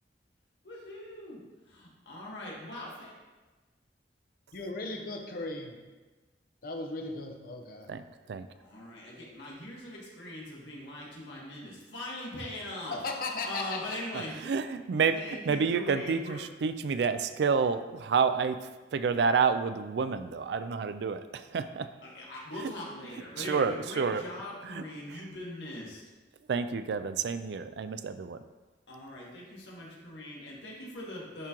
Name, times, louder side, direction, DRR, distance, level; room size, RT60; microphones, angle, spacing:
voice 1, 0.6-1.4 1.7-3.1 8.6-13.0 13.3-14.3 15.1-16.4 22.0-26.0 28.9-31.5, left 1 dB, 85° left, -4 dB, 1.6 m, -41 dB
voice 2, 4.5-5.8 6.6-7.9 12.9-14.0, left 3 dB, 55° left, 3 dB, 0.8 m, -36 dB
voice 3, 14.4-15.2 15.5-18.6 18.9-21.9 23.4-24.2 24.7-24.8 26.5-28.4, right 5 dB, 65° right, 11 dB, 0.4 m, -29 dB
10.5 x 3.7 x 3.0 m, 1.2 s
head